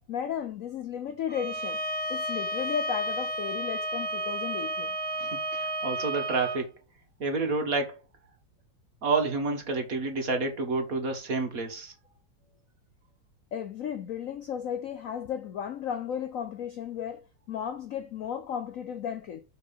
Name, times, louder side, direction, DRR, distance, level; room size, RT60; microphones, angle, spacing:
voice 1, 0.1-1.8 2.1-4.9 13.5-19.4, left 8 dB, 75° left, 0.7 m, -34 dB
Bowed string instrument, 1.3-6.6, right 1 dB, 20° right, 0.6 m, -32 dB
voice 2, 5.2-6.7 7.2-8.0 9.0-11.9, right 3 dB, 45° right, 1.8 m, -29 dB
6.1 x 5.3 x 5.4 m
omnidirectional pair, 2.2 m